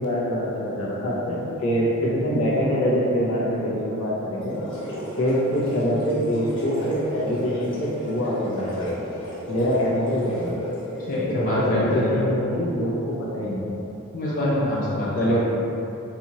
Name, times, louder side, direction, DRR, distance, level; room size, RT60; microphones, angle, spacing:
voice 1, 0.0-4.6 5.2-8.9 9.2-10.5 11.3-13.7 15.1-15.4, equal, 70° left, -6 dB, 0.8 m, -24 dB
sound 1, 4.4-11.2, equal, 20° left, 1.0 m, -34 dB
voice 2, 11.0-12.2 14.1-15.4, left 1 dB, 40° left, -8 dB, 0.5 m, -25 dB
4.2 x 2.5 x 2.9 m, 3.0 s
head